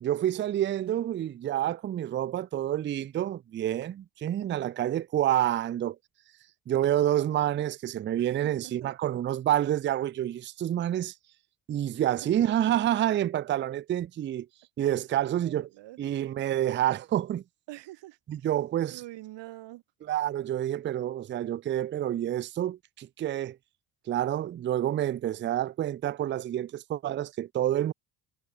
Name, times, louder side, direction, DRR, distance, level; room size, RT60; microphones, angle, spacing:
voice 1, 0.0-6.0 6.7-11.1 11.7-14.5 14.8-15.7 16.0-17.4 18.3-19.0 20.0-23.6 24.1-27.9, right 12 dB, 25° right, 0.4 m, -28 dB
voice 2, 8.2-8.9 11.9-12.3 14.8-15.0 15.4-16.0 17.7-18.2 18.9-19.8, right 17 dB, 65° right, 2.3 m, -46 dB
hypercardioid pair, 60°, 46 cm